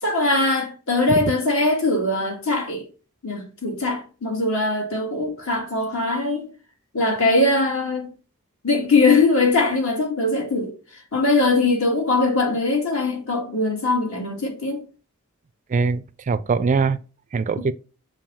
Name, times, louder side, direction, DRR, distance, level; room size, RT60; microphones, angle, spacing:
voice 1, 0.0-2.9 3.2-6.5 6.9-8.1 8.6-14.8 17.6-17.7, left 2 dB, 65° left, 2.2 m, -21 dB
voice 2, 15.7-17.0 17.3-17.7, right 4 dB, 35° right, 0.3 m, -22 dB
7.1 x 2.7 x 5.5 m
head